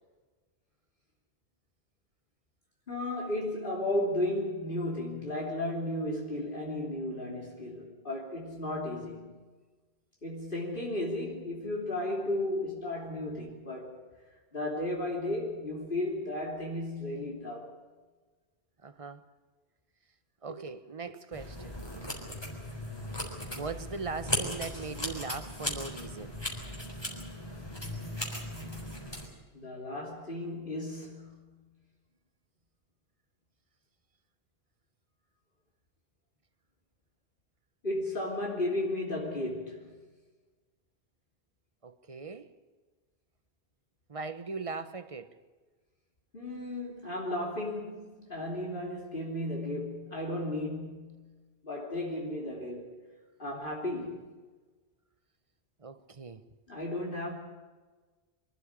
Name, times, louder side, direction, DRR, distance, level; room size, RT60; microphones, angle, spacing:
voice 1, 2.9-9.3 10.2-14.0 14.5-17.7 29.5-31.6 37.8-39.9 46.3-51.3 51.6-53.0 53.4-54.3 56.7-57.4, left 1 dB, 55° left, 3.4 m, -34 dB
voice 2, 18.8-19.2 20.4-21.8 23.5-26.3 41.8-42.5 44.1-45.3 55.8-56.4, right 4 dB, 35° right, 1.1 m, -39 dB
sound 1, 21.3-29.3, left 1 dB, 25° left, 4.0 m, -37 dB
24.5 x 12.5 x 9.8 m
omnidirectional pair, 1.1 m